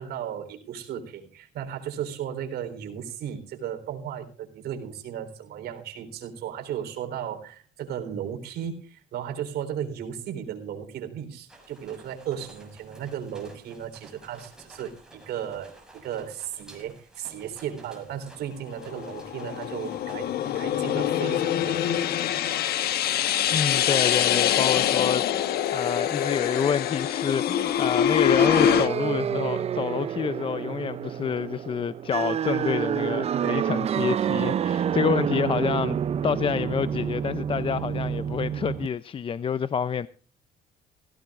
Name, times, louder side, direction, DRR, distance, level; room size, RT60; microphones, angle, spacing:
voice 1, 0.0-22.0 33.3-33.8, right 9 dB, 75° right, 3.9 m, -35 dB
sound 1, 11.5-21.8, right 2 dB, 5° right, 6.3 m, -52 dB
sound 2, 18.8-28.9, left 10 dB, 70° left, 1.3 m, -24 dB
voice 2, 23.5-36.0 36.2-40.1, left 7 dB, 30° left, 0.5 m, -28 dB
sound 3, 28.4-38.9, right 8 dB, 40° right, 0.5 m, -28 dB
18.0 x 16.5 x 2.5 m
cardioid pair, 110°, 17 cm